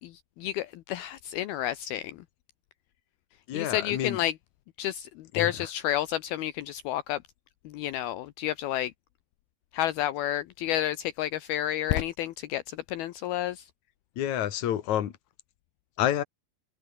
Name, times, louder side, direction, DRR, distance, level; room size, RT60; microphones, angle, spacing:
voice 1, 0.0-2.2 3.5-4.4 4.8-7.2 7.6-8.9 9.7-13.7, left 12 dB, 75° left, 2.7 m, -30 dB
voice 2, 3.5-4.2 5.3-5.5 14.2-15.1 16.0-16.2, left 11 dB, 55° left, 2.9 m, -28 dB
omnidirectional pair, 4.7 m